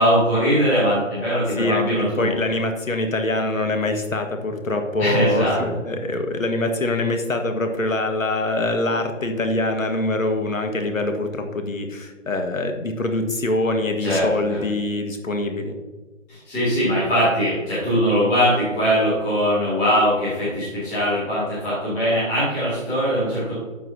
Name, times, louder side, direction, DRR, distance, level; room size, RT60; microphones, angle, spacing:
voice 1, 0.0-2.3 5.0-5.6 14.0-14.6 16.3-23.5, equal, 10° left, -14 dB, 2.3 m, -21 dB
voice 2, 1.6-15.8, left 2 dB, 80° left, 5 dB, 1.6 m, -24 dB
12.0 x 6.9 x 2.8 m, 1.3 s
figure-of-eight pair, 165°, 39 cm